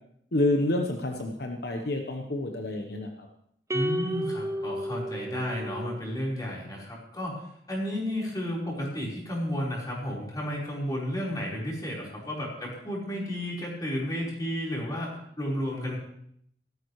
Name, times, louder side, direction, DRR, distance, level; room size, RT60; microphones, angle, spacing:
voice 1, 0.3-3.3, left 1 dB, 60° left, 3 dB, 1.0 m, -28 dB
voice 2, 3.7-7.4 7.7-16.0, equal, 20° left, -4 dB, 4.3 m, -32 dB
sound 1, 3.7-6.2, equal, 15° right, 0.6 m, -32 dB
16.5 x 13.0 x 3.2 m, 0.71 s
head